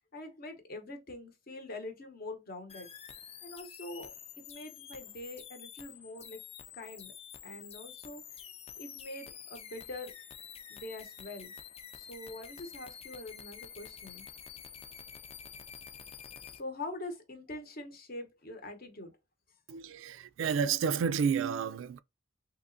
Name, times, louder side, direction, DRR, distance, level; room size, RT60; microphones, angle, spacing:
voice 1, 0.1-2.9 3.4-4.1 4.5-6.4 6.7-7.1 7.4-8.2 8.8-10.1 10.7-11.5 11.9-14.2 16.6-19.1, left 2 dB, 50° left, 0.8 m, -44 dB
sound 1, 2.7-16.6, left 8 dB, 30° left, 0.3 m, -48 dB
voice 2, 19.7-22.0, right 6 dB, 75° right, 0.3 m, -30 dB
3.6 x 2.9 x 2.5 m
head